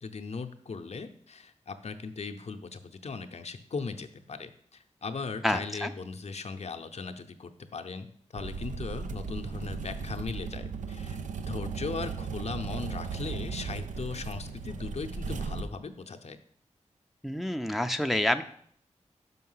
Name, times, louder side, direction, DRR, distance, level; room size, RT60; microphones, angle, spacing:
voice 1, 0.0-8.1 8.3-16.4, left 4 dB, 60° left, 7 dB, 0.6 m, -38 dB
voice 2, 5.4-5.9 17.2-18.4, left 1 dB, ahead, 7 dB, 0.5 m, -28 dB
sound 1, 8.4-15.6, right 5 dB, 90° right, 0.5 m, -36 dB
5.7 x 5.6 x 5.5 m, 0.63 s
cardioid pair, 50°, 13 cm